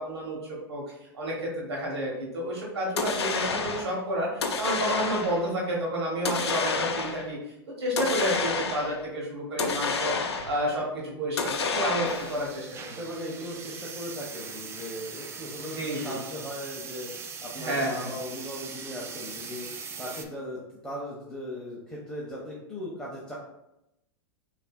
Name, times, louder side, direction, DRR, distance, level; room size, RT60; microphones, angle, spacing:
voice 1, 0.0-7.4 7.8-13.0 15.6-16.2 17.5-18.1, right 1 dB, 80° right, -3 dB, 1.0 m, -30 dB
sound 1, 3.0-3.9 4.4-5.5 6.2-7.3 8.0-9.0 9.6-10.7 11.4-12.5, left 4 dB, 85° left, 0.6 m, -29 dB
sound 2, 12.0-20.2, right 5 dB, 20° right, 0.4 m, -41 dB
voice 2, 12.9-17.1 17.4-23.3, left 1 dB, 5° left, -6 dB, 0.8 m, -38 dB
5.3 x 2.6 x 2.3 m, 0.87 s
hypercardioid pair, 105°, 13 cm